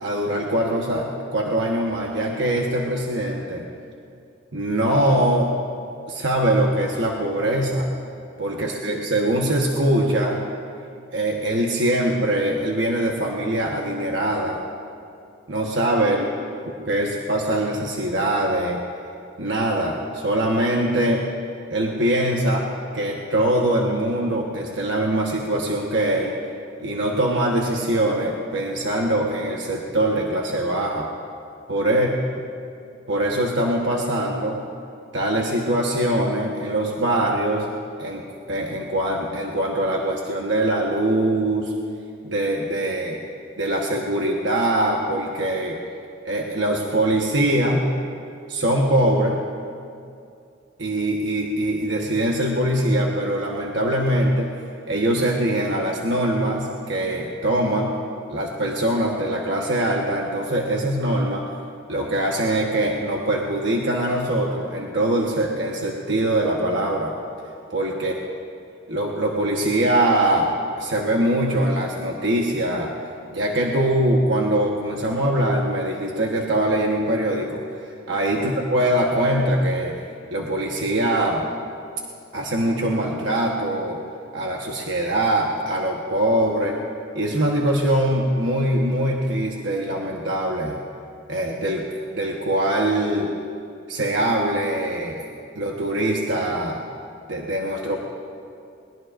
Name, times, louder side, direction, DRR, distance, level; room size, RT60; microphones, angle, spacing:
voice 1, 0.0-3.6 4.5-5.5 6.1-7.9 8.4-10.5 11.1-14.6 15.5-16.2 16.8-18.8 19.4-21.3 21.7-22.7 22.9-26.3 26.8-31.1 31.7-32.1 33.1-34.7 35.1-37.7 38.0-41.7 42.2-43.2 43.6-45.8 46.2-47.9 48.5-49.4 50.8-54.5 54.9-58.0 58.3-61.5 61.9-67.1 67.7-68.1 68.9-72.9 73.3-77.6 78.1-80.0 80.3-81.5 82.3-84.0 84.3-86.8 87.1-90.8 91.3-91.9 92.1-93.3 93.9-95.2 95.5-96.8 97.3-98.0, right 1 dB, 65° right, -1 dB, 1.2 m, -22 dB
21.0 x 20.5 x 2.5 m, 2.4 s
head